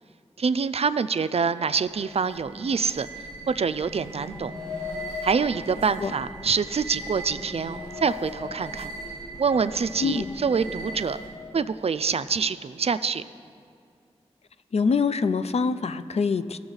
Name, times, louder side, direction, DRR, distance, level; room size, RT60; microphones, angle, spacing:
voice 1, 0.4-3.1 3.5-4.5 5.2-8.9 9.4-11.2 11.5-13.2, right 5 dB, 60° right, 13 dB, 0.4 m, -26 dB
sound 1, 1.7-11.5, equal, 80° left, 2.1 m, -38 dB
voice 2, 14.7-16.6, left 5 dB, 65° left, 13 dB, 0.4 m, -24 dB
16.5 x 7.0 x 3.9 m, 2.3 s
cardioid pair, 45°, 11 cm